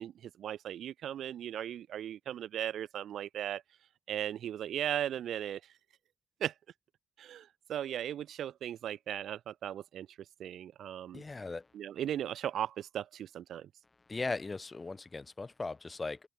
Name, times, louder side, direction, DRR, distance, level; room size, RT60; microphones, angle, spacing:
voice 1, 0.0-3.6 4.1-5.6 6.4-6.5 7.2-10.1 10.4-11.2 11.7-13.7, right 10 dB, 90° right, 1.1 m, -37 dB
voice 2, 11.1-11.7 14.1-16.2, left 3 dB, 35° left, 1.3 m, -38 dB
open air
cardioid pair, 60°, 0 cm